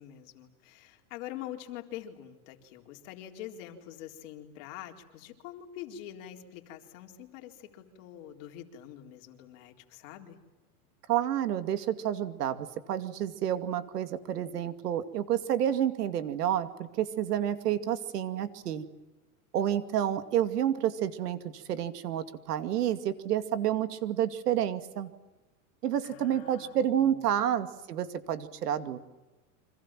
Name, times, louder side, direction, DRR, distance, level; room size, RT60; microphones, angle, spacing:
voice 1, 0.0-10.4 26.0-27.4, left 11 dB, 55° left, 3 dB, 4.1 m, -45 dB
voice 2, 11.1-18.8 19.5-25.1 25.8-29.0, right 10 dB, 85° right, 10 dB, 2.5 m, -29 dB
30.0 x 26.0 x 7.6 m, 1.1 s
supercardioid pair, 140°, 46 cm